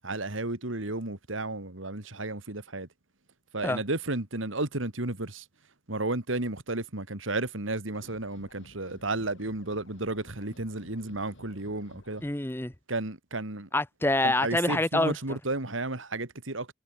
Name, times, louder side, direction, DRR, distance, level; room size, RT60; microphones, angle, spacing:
voice 1, 0.0-2.9 3.5-5.4 5.9-12.2 12.9-13.7 14.2-16.7, right 2 dB, 80° right, 2.8 m, -33 dB
sound 1, 7.9-12.3, left 1 dB, 70° left, 6.0 m, -54 dB
voice 2, 12.2-12.7 13.7-15.2, left 2 dB, 10° left, 0.9 m, -26 dB
head